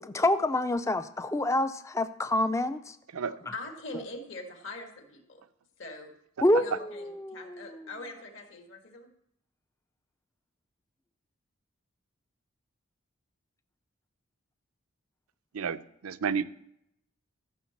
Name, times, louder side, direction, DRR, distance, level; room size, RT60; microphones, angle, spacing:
voice 1, 0.0-3.0 6.4-7.9, left 1 dB, 15° left, 11 dB, 0.4 m, -27 dB
voice 2, 3.2-5.4 5.8-6.1 6.6-9.1, left 2 dB, 60° left, 3 dB, 1.8 m, -43 dB
voice 3, 15.5-16.5, right 6 dB, 85° right, 13 dB, 0.5 m, -31 dB
14.0 x 5.9 x 7.2 m, 0.75 s
head